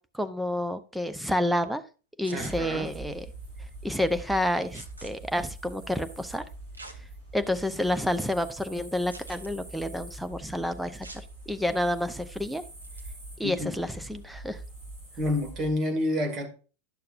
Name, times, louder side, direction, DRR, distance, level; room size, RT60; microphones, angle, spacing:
voice 1, 0.1-1.8 2.2-3.3 3.8-6.4 7.3-11.1 11.5-12.6 13.4-14.6, left 1 dB, ahead, 0.6 m, -29 dB
sound 1, 2.2-2.5 4.7-5.1 6.7-7.0 7.6-7.7 9.1-9.5 11.0-11.2 12.8-13.0, right 2 dB, 80° right, 1.0 m, -45 dB
voice 2, 2.3-2.9 13.4-13.7 15.2-16.5, left 1 dB, 30° right, 2.0 m, -29 dB
sound 2, 2.4-15.7, right 2 dB, 55° right, 4.1 m, -44 dB
10.5 x 6.6 x 2.5 m
figure-of-eight pair, 90°, 0 cm